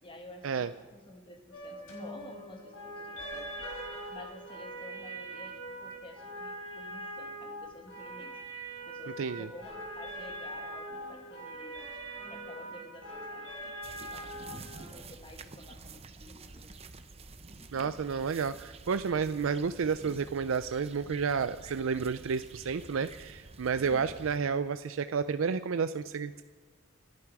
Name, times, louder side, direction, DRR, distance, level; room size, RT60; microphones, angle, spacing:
voice 1, 0.0-3.7 4.1-8.4 8.9-12.0 12.3-14.4 14.9-16.9 17.6-18.0 18.4-18.5 23.8-24.2, left 1 dB, 25° left, 4 dB, 1.8 m, -51 dB
sound 1, 1.5-14.9, right 1 dB, 80° left, 5.6 m, -42 dB
voice 2, 9.2-9.5 17.7-26.4, right 5 dB, 80° right, 11 dB, 0.5 m, -31 dB
sound 2, 13.8-24.4, right 3 dB, 30° right, 0.7 m, -49 dB
27.0 x 9.7 x 4.7 m, 1.6 s
head